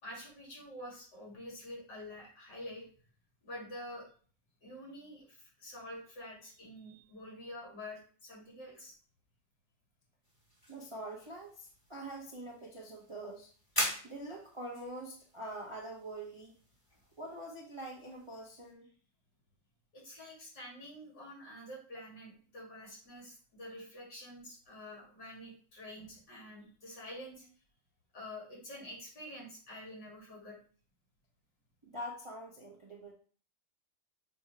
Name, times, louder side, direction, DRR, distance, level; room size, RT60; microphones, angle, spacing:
voice 1, 0.0-2.9 3.4-4.1 4.6-8.9 14.0-14.1 19.9-27.5 28.1-30.6, left 1 dB, 55° left, -4 dB, 3.2 m, -47 dB
sound 1, 10.2-18.7, equal, 10° left, 1.8 m, -43 dB
voice 2, 10.7-13.5 14.0-16.6 17.2-18.9 31.8-33.1, right 1 dB, 25° right, -2 dB, 0.6 m, -44 dB
7.0 x 2.9 x 4.7 m, 0.44 s
omnidirectional pair, 2.2 m